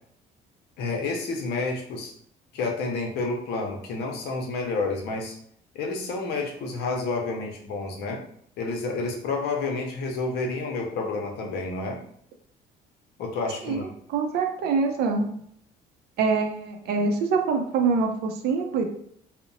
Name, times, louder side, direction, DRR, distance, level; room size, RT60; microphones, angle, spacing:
voice 1, 0.8-2.1 2.5-5.3 5.7-8.2 8.6-12.0 13.2-13.9, left 3 dB, 75° left, 1 dB, 0.6 m, -29 dB
voice 2, 13.6-15.3 16.2-18.9, right 4 dB, 70° right, 4 dB, 0.5 m, -25 dB
2.8 x 2.0 x 2.6 m, 0.66 s
cardioid pair, 110°, 17 cm